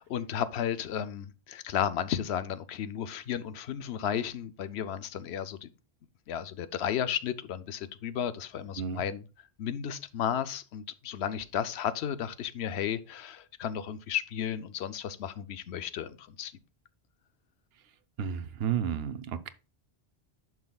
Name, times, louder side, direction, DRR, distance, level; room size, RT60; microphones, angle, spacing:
voice 1, 0.0-5.7 6.3-9.3 9.6-16.5, left 9 dB, 80° left, 0.9 m, -33 dB
voice 2, 18.2-19.5, right 8 dB, 70° right, 0.9 m, -32 dB
10.5 x 5.8 x 2.3 m
omnidirectional pair, 1.1 m